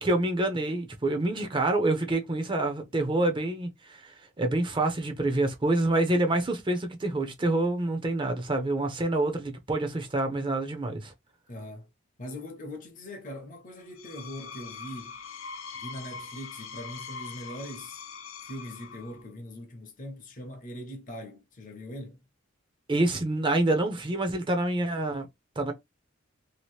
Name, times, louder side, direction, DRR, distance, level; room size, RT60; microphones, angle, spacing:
voice 1, 0.0-4.1 4.4-11.1 22.9-25.3 25.6-25.7, right 2 dB, 25° right, 0.6 m, -27 dB
voice 2, 11.5-11.9 12.2-15.2 15.7-18.1 18.4-22.2, left 1 dB, 40° left, 0.7 m, -41 dB
Screech, 13.8-19.3, left 5 dB, 75° left, 0.6 m, -42 dB
2.8 x 2.5 x 3.1 m
head